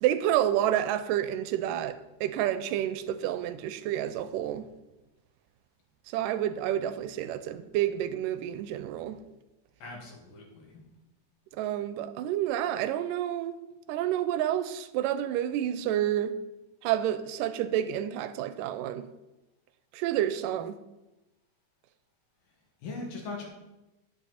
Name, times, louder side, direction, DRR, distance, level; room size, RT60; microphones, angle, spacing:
voice 1, 0.0-4.7 6.1-9.2 11.6-13.6 13.9-16.4 16.8-19.1 19.9-20.8, right 11 dB, 85° right, 2.2 m, -29 dB
voice 2, 9.8-10.7 22.8-23.5, left 3 dB, 85° left, 3.6 m, -40 dB
9.8 x 8.3 x 4.1 m
omnidirectional pair, 3.9 m